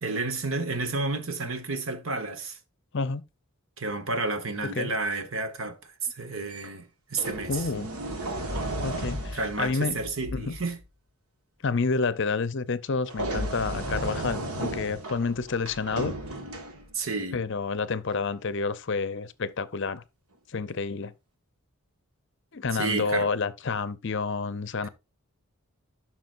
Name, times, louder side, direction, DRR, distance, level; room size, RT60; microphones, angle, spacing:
voice 1, 0.0-2.6 3.8-5.8 6.1-7.7 9.3-10.8 16.9-17.4 22.7-23.3, right 3 dB, 65° right, 1.3 m, -31 dB
sound 1, 6.5-6.7 7.2-10.6 13.1-17.1 18.1-18.3, right 1 dB, 85° right, 1.5 m, -34 dB
voice 2, 7.5-7.9 8.8-10.0 10.3-10.6 11.6-16.1 17.3-20.0 20.5-21.1 22.5-24.9, left 4 dB, 55° left, 0.6 m, -29 dB
12.0 x 6.0 x 2.5 m
head